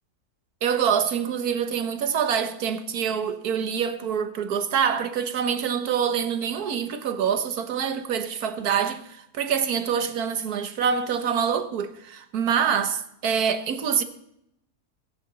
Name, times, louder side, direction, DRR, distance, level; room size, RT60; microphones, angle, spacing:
voice 1, 0.6-14.0, right 7 dB, 75° right, 1.6 m, -25 dB
21.0 x 9.8 x 3.9 m
omnidirectional pair, 1.6 m